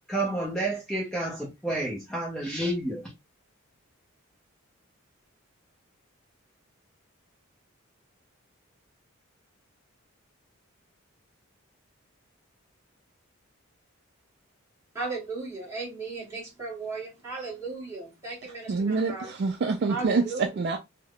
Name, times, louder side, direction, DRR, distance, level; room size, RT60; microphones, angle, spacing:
voice 1, 0.1-3.0, right 1 dB, 5° left, 0.5 m, -30 dB
voice 2, 14.9-19.3 19.9-20.5, right 3 dB, 15° right, 1.4 m, -36 dB
voice 3, 18.7-20.8, right 4 dB, 50° right, 0.3 m, -26 dB
3.3 x 2.0 x 2.3 m
head